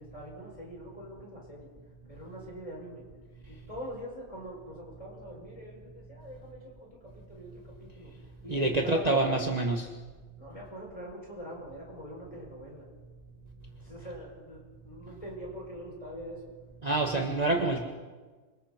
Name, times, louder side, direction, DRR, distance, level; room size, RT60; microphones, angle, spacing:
voice 1, 0.0-1.7 2.1-3.1 3.5-9.4 10.4-12.9 13.8-16.5, equal, 20° left, -3 dB, 7.3 m, -43 dB
voice 2, 8.5-9.9 16.8-17.8, right 2 dB, 25° right, 1 dB, 1.6 m, -27 dB
28.0 x 26.0 x 4.5 m, 1.4 s
omnidirectional pair, 1.5 m